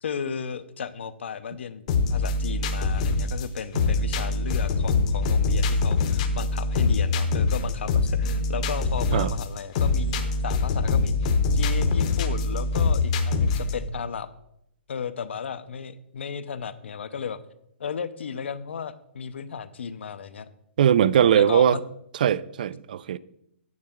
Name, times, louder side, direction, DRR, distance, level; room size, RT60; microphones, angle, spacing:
voice 1, 0.0-1.8 2.1-14.3 14.9-17.4 17.8-20.5 21.3-21.8, left 6 dB, 70° left, 0.7 m, -34 dB
sound 1, 1.9-13.9, left 3 dB, 30° left, 0.8 m, -24 dB
voice 2, 20.8-21.8 22.2-23.2, right 9 dB, 45° right, 0.3 m, -20 dB
9.5 x 9.2 x 3.7 m
hypercardioid pair, 170°, 6 cm